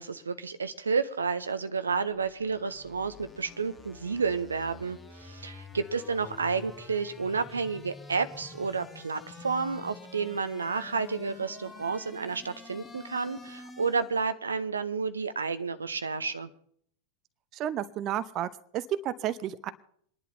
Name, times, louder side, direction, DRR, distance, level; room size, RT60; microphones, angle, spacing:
voice 1, 0.0-16.5, right 5 dB, 75° right, 11 dB, 0.7 m, -31 dB
sound 1, 2.0-14.2, left 3 dB, 15° left, 1.6 m, -48 dB
voice 2, 17.5-19.7, right 11 dB, 35° right, 13 dB, 0.7 m, -32 dB
27.5 x 11.0 x 2.7 m, 0.64 s
figure-of-eight pair, 90°, 0 cm